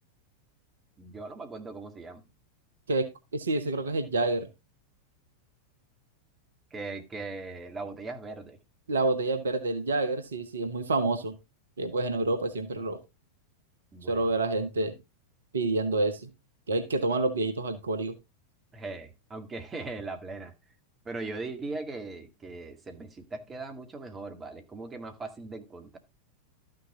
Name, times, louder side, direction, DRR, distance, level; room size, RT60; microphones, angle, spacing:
voice 1, 1.0-2.2 6.7-8.6 13.9-14.3 18.7-20.5 21.1-26.0, right 3 dB, 20° right, 2.0 m, -39 dB
voice 2, 2.9-4.5 8.9-11.4 11.8-13.0 14.1-15.0 15.5-16.3 16.7-18.1, right 2 dB, 70° right, 1.2 m, -28 dB
13.0 x 6.6 x 3.7 m
figure-of-eight pair, 90°, 0 cm